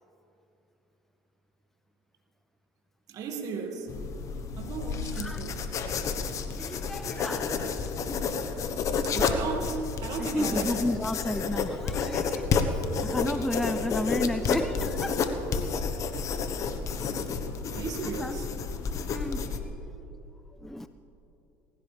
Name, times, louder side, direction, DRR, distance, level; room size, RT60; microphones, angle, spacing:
voice 1, 3.1-3.9 4.6-5.6 9.0-10.9 17.7-18.5, right 5 dB, 55° right, 3 dB, 2.0 m, -35 dB
sound 1, 3.9-19.6, left 5 dB, 50° left, 1.1 m, -30 dB
voice 2, 5.1-5.5 6.6-7.6 10.2-15.3 18.0-18.4 19.1-19.5 20.5-20.9, left 1 dB, 5° left, 10 dB, 0.5 m, -33 dB
18.5 x 16.0 x 3.4 m, 3.0 s
supercardioid pair, 85°, 7 cm